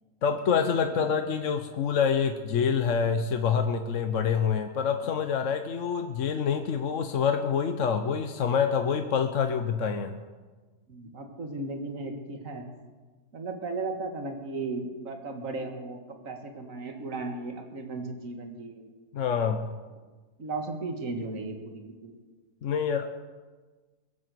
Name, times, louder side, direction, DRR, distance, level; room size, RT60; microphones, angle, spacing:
voice 1, 0.2-10.1 19.1-19.7 22.6-23.1, left 6 dB, 55° left, 7 dB, 1.1 m, -26 dB
voice 2, 10.9-12.6 13.3-18.9 20.4-22.1, right 3 dB, 55° right, 4 dB, 2.1 m, -36 dB
22.0 x 7.7 x 7.7 m, 1.3 s
omnidirectional pair, 1.7 m